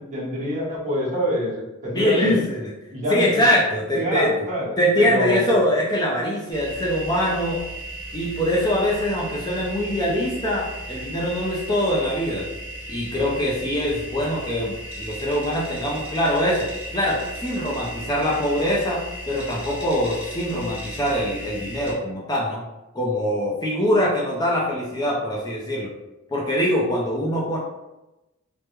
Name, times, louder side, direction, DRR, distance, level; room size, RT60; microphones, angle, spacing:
voice 1, 0.0-2.4 2.9-3.4 3.9-5.5, equal, 35° right, -6 dB, 1.0 m, -25 dB
voice 2, 1.9-2.6 3.1-4.3 4.8-7.6 8.1-12.5 12.9-22.6 22.9-25.9 26.3-27.6, equal, 20° left, -4 dB, 0.4 m, -23 dB
sound 1, 6.5-21.9, right 1 dB, 5° right, 1.2 m, -36 dB
3.3 x 2.1 x 3.0 m, 0.99 s
head